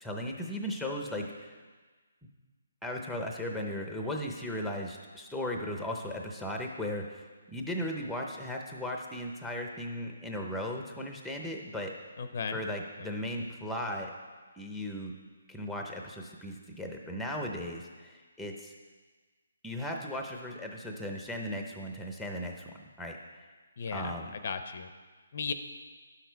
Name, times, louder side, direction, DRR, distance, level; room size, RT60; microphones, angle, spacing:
voice 1, 0.0-1.6 2.8-11.9 12.5-14.1 14.6-15.1 15.5-18.7 19.6-22.7 23.0-23.2 23.9-24.3, left 1 dB, ahead, 1 dB, 0.7 m, -36 dB
voice 2, 12.2-12.6 13.0-13.1 23.8-24.1 24.4-24.9 25.3-25.5, left 5 dB, 50° left, 9 dB, 0.6 m, -35 dB
11.0 x 6.5 x 4.6 m, 1.4 s
hypercardioid pair, 165°, 0 cm